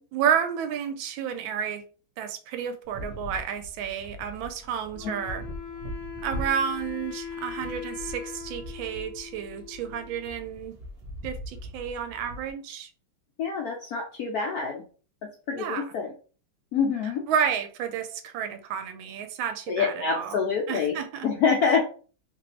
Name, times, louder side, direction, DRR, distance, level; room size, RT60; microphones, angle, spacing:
voice 1, 0.1-1.8 2.2-5.4 6.2-10.7 11.2-12.9 15.5-15.9 17.3-20.4 20.7-21.3, right 8 dB, 75° right, 8 dB, 1.3 m, -31 dB
sound 1, 2.8-12.5, equal, 55° right, 1.1 m, -41 dB
Wind instrument woodwind instrument, 4.9-10.4, left 7 dB, 65° left, 1.0 m, -40 dB
voice 2, 13.4-14.8 15.5-16.1 16.7-17.2 19.7-20.9 21.2-21.8, left 5 dB, 90° left, 0 dB, 0.8 m, -26 dB
3.2 x 2.9 x 3.0 m, 0.39 s
omnidirectional pair, 2.3 m